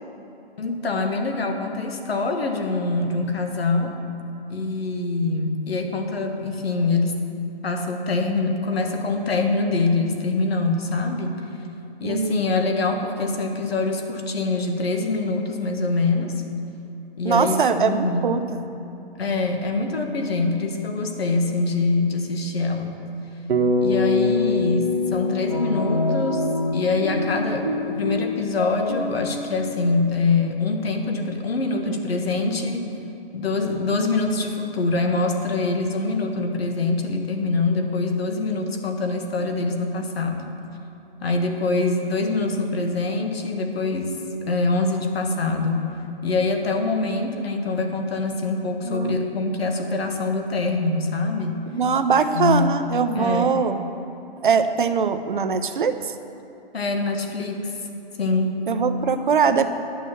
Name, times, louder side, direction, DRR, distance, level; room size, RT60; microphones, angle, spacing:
voice 1, 0.6-4.0 4.5-7.2 7.6-11.5 12.0-16.4 17.2-18.3 19.2-23.0 23.8-26.4 26.7-32.9 33.3-40.5 41.2-45.9 46.2-51.7 52.3-52.7 53.1-53.5 56.7-57.9 58.2-58.5, left 3 dB, 75° left, 4 dB, 1.6 m, -24 dB
voice 2, 12.0-12.5 17.2-18.4 48.8-49.3 51.7-53.8 54.4-56.1 58.7-59.7, right 6 dB, 55° right, 9 dB, 0.7 m, -22 dB
Bass guitar, 23.5-27.9, left 2 dB, 85° right, 1.4 m, -24 dB
sound 1, 25.5-30.4, left 1 dB, 25° left, 0.4 m, -28 dB
11.5 x 6.4 x 6.9 m, 2.9 s
hypercardioid pair, 180°, 31 cm